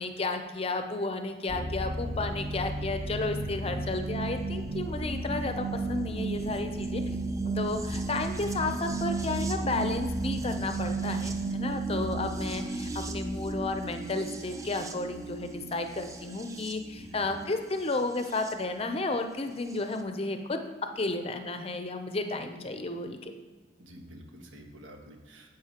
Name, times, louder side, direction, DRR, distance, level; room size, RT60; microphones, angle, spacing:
voice 1, 0.0-7.0 7.6-20.6 21.0-23.3, left 2 dB, 30° left, 7 dB, 0.5 m, -32 dB
sound 1, 1.5-18.5 19.7-19.8, right 2 dB, 15° right, 0.5 m, -34 dB
voice 2, 16.9-17.3 23.8-25.5, equal, 85° right, 2 dB, 1.4 m, -49 dB
9.7 x 7.4 x 2.9 m, 1.4 s
head